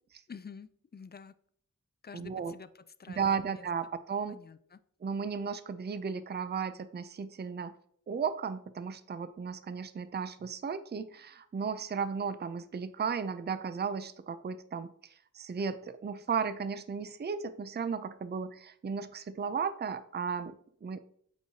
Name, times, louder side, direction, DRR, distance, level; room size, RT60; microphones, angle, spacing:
voice 1, 0.3-1.3 2.0-3.7 4.3-4.8, left 6 dB, 30° left, 14 dB, 0.4 m, -49 dB
voice 2, 2.1-2.5 3.2-4.4 5.0-7.7 8.1-21.0, right 6 dB, 30° right, 12 dB, 0.4 m, -35 dB
8.1 x 4.6 x 2.7 m, 0.62 s
wide cardioid pair, 60°, 33 cm